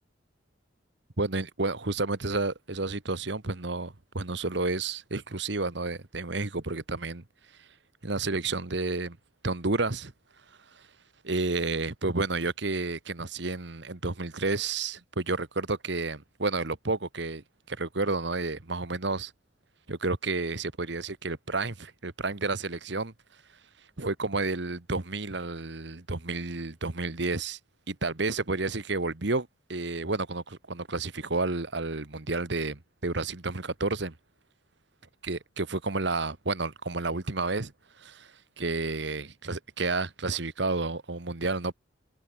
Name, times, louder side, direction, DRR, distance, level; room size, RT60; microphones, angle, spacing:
voice 1, 1.2-7.2 7.5-7.7 8.0-9.2 9.4-10.1 10.5-10.9 11.2-19.3 19.9-23.4 24.0-27.6 27.9-34.2 35.2-41.7, right 3 dB, 60° right, 1.5 m, -31 dB
head